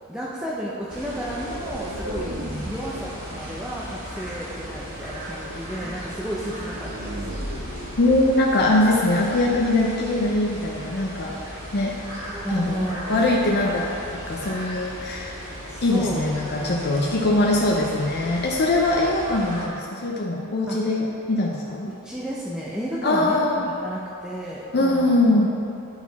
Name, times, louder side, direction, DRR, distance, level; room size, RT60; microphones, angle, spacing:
voice 1, 0.1-7.3 12.3-13.3 15.7-16.2 16.5-17.2 20.7-20.8 21.9-25.2, equal, 5° right, -6 dB, 0.6 m, -32 dB
sound 1, 0.9-19.7, equal, 70° right, 1.8 m, -37 dB
sound 2, 1.0-9.8, right 1 dB, 85° right, 1.3 m, -38 dB
voice 2, 8.0-12.0 12.5-15.3 15.8-21.9 23.0-23.7 24.7-25.5, left 2 dB, 50° left, -1 dB, 0.6 m, -22 dB
10.5 x 4.8 x 4.0 m, 2.7 s
head